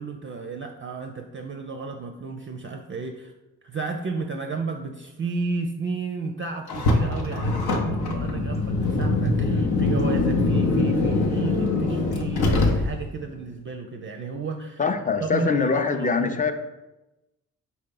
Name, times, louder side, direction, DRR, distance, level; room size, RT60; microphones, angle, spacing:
voice 1, 0.0-3.3 3.6-14.8 15.2-16.4, right 4 dB, 35° right, 4 dB, 0.4 m, -32 dB
Car, 6.7-13.2, left 2 dB, 70° left, 0.8 m, -23 dB
voice 2, 14.8-16.5, left 5 dB, 20° left, 7 dB, 0.5 m, -23 dB
4.1 x 2.8 x 3.7 m, 1.0 s
supercardioid pair, 45°, 38 cm